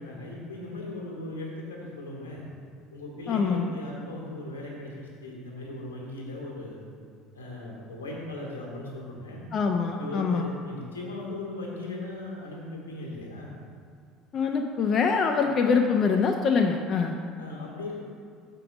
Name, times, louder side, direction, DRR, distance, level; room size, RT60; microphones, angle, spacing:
voice 1, 0.0-2.4 2.9-6.8 7.3-9.5 10.0-13.5 15.4-15.5 17.4-18.0, left 2 dB, 80° left, -2 dB, 1.7 m, -38 dB
voice 2, 3.3-3.7 9.5-10.5 14.3-17.2, left 5 dB, 40° left, 3 dB, 0.5 m, -24 dB
6.7 x 5.3 x 6.1 m, 2.3 s
figure-of-eight pair, 65°, 0 cm